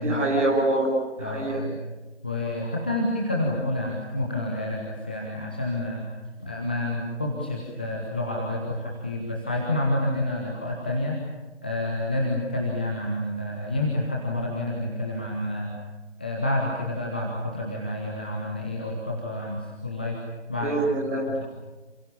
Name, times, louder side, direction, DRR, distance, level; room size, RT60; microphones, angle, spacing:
voice 1, 0.0-1.6 20.6-21.2, right 2 dB, 10° right, -6 dB, 6.1 m, -25 dB
voice 2, 1.2-1.8 2.2-6.0 6.4-11.2 11.6-15.8 16.2-20.2 20.5-20.7 21.3-21.4, left 1 dB, 10° left, -2 dB, 1.0 m, -29 dB
28.5 x 27.0 x 7.1 m, 1.2 s
figure-of-eight pair, 160°, 35 cm